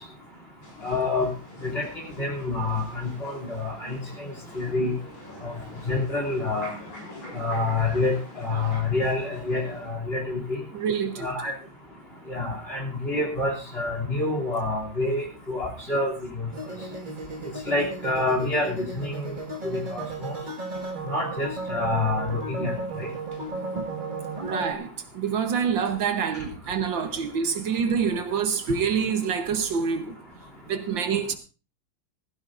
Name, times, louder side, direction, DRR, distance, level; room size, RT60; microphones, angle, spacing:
sound 1, 0.6-9.9, left 1 dB, 85° left, 8.0 m, -45 dB
voice 1, 0.8-1.3 1.6-1.8 2.2-4.9 5.4-5.5 5.9-6.7 7.3-10.6 11.2-11.5 12.3-16.5 17.7-19.3 19.6-20.3 21.1-23.1, left 2 dB, 30° left, 3.2 m, -27 dB
voice 2, 10.7-11.3 24.4-24.9 25.1-30.1 30.7-31.3, right 6 dB, 70° right, 1.7 m, -26 dB
sound 2, 16.5-24.7, right 2 dB, 25° right, 1.8 m, -35 dB
17.0 x 15.0 x 2.6 m
omnidirectional pair, 2.2 m